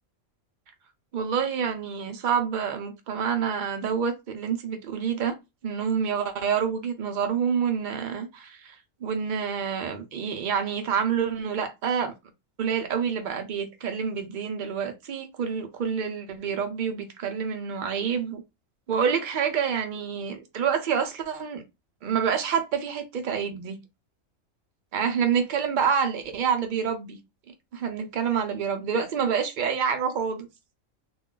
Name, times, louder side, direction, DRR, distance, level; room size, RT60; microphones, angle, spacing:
voice 1, 1.1-5.4 5.6-8.7 9.0-12.1 12.6-18.4 18.9-21.6 22.0-23.8 24.9-27.2 27.7-30.5, right 7 dB, 75° right, 0.4 m, -27 dB
2.4 x 2.2 x 3.6 m
omnidirectional pair, 1.4 m